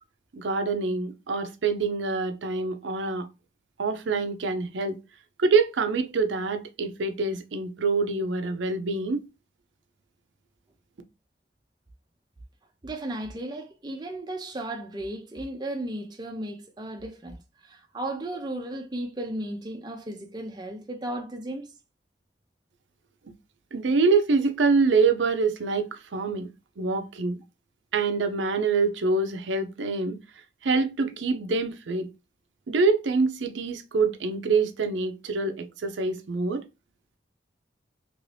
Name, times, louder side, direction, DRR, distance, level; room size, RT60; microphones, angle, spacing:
voice 1, 0.3-3.3 3.8-5.0 5.4-9.2 23.7-26.5 26.8-27.4 27.9-30.2 30.6-32.1 32.7-36.6, right 4 dB, 85° right, 0.5 m, -25 dB
voice 2, 12.8-21.7, right 1 dB, 25° right, 0.5 m, -35 dB
3.0 x 2.6 x 3.2 m
head